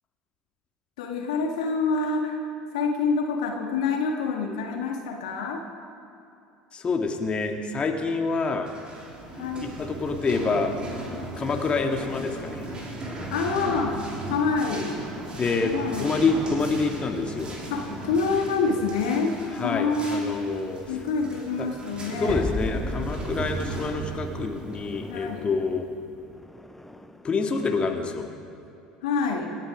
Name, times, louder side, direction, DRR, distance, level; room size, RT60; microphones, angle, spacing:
voice 1, 1.0-5.6 9.4-9.7 13.3-14.0 14.3-15.0 15.6-16.2 17.7-20.3 20.9-22.4 25.1-25.5 29.0-29.5, left 4 dB, 70° left, 2 dB, 1.8 m, -27 dB
voice 2, 6.7-8.7 9.6-10.7 11.4-12.7 15.4-17.6 19.6-21.0 21.6-21.7 22.2-25.9 27.2-28.3, left 4 dB, 30° left, 3 dB, 1.9 m, -27 dB
sound 1, 8.5-25.9, right 2 dB, 25° right, 3.7 m, -37 dB
sound 2, 22.3-27.4, left 2 dB, 5° left, 0.8 m, -36 dB
27.5 x 9.3 x 5.1 m, 2.7 s
figure-of-eight pair, 65°, 4 cm